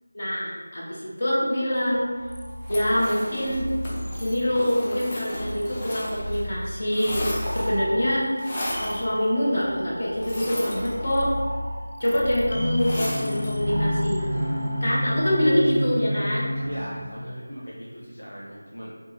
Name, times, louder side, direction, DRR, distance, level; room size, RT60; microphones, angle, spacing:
voice 1, 0.1-2.1 2.7-3.7 4.1-8.3 8.8-11.3 12.0-14.3 14.8-16.5, equal, 45° left, -6 dB, 0.8 m, -25 dB
sound 1, 1.7-15.5, equal, 90° right, 0.4 m, -35 dB
sound 2, 2.6-6.4 6.7-7.9 8.4-9.0 10.2-11.4 12.8-13.6, left 1 dB, 20° left, 0.4 m, -34 dB
sound 3, 12.5-17.1, equal, 5° right, 1.0 m, -28 dB
voice 2, 16.7-19.0, equal, 85° left, -7 dB, 0.6 m, -38 dB
2.8 x 2.3 x 2.8 m, 1.4 s
figure-of-eight pair, 170°, 0 cm